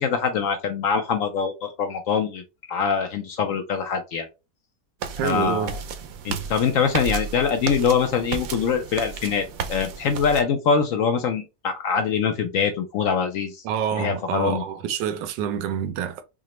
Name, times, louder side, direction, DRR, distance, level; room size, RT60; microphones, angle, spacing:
voice 1, 0.0-2.4 2.7-4.3 5.2-5.8 6.2-13.6 13.9-14.6, left 6 dB, 75° left, 0.7 m, -24 dB
sound 1, 5.0-10.4, right 6 dB, 70° right, 0.9 m, -33 dB
voice 2, 5.2-5.8 13.6-16.2, right 9 dB, 85° right, 1.2 m, -27 dB
4.9 x 2.0 x 3.0 m
omnidirectional pair, 1.9 m